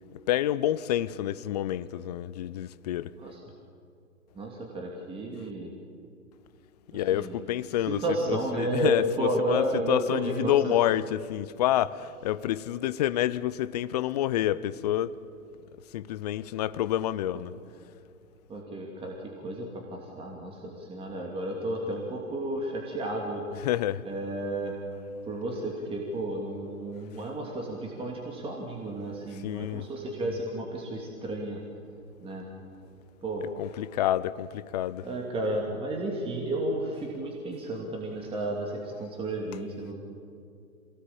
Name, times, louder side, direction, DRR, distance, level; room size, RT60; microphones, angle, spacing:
voice 1, 0.1-3.1 6.9-15.1 15.9-17.5 23.6-24.0 29.4-29.9 33.6-35.1, left 12 dB, 30° left, 0.6 m, -28 dB
voice 2, 4.3-5.7 6.9-7.3 7.9-10.7 17.3-17.4 18.5-23.4 24.0-24.7 25.2-31.6 32.2-32.4 33.2-33.4 35.0-39.9, right 1 dB, 10° right, 2.9 m, -32 dB
27.0 x 18.5 x 8.8 m
hypercardioid pair, 130°, 44 cm